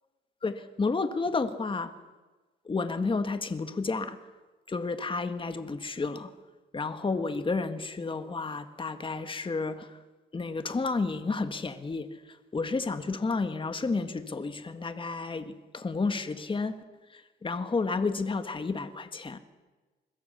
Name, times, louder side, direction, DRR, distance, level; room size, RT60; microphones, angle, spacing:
voice 1, 0.4-1.9 2.7-4.2 4.7-6.3 6.7-10.0 10.3-16.8 17.1-19.4, left 4 dB, 25° left, 9 dB, 1.8 m, -31 dB
26.5 x 22.5 x 6.9 m, 1.2 s
cardioid pair, 90°, 20 cm